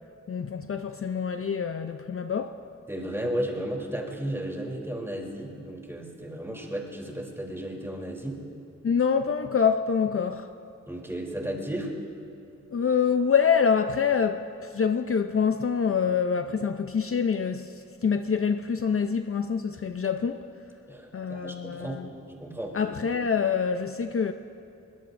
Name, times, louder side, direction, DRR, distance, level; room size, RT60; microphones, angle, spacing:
voice 1, 0.3-2.6 8.8-10.5 12.7-20.4 21.1-22.1 22.7-24.3, left 6 dB, 50° left, 7 dB, 0.6 m, -26 dB
voice 2, 2.9-8.4 10.9-11.9 20.9-22.7, right 1 dB, 10° right, -1 dB, 3.2 m, -34 dB
24.0 x 22.5 x 2.6 m, 2.7 s
wide cardioid pair, 75°, 29 cm